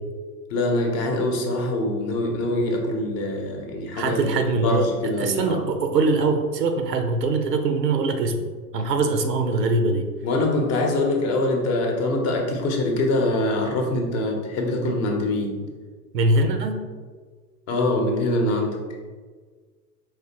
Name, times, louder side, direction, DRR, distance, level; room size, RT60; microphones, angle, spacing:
voice 1, 0.5-4.3 4.5-5.6 10.2-15.5 17.7-18.8, left 2 dB, 30° left, 1 dB, 0.8 m, -24 dB
voice 2, 3.9-4.9 5.2-8.5 8.7-10.0 16.1-16.8, right 3 dB, 80° right, 5 dB, 0.8 m, -22 dB
4.9 x 3.2 x 2.9 m, 1.5 s
hypercardioid pair, 105°, 48 cm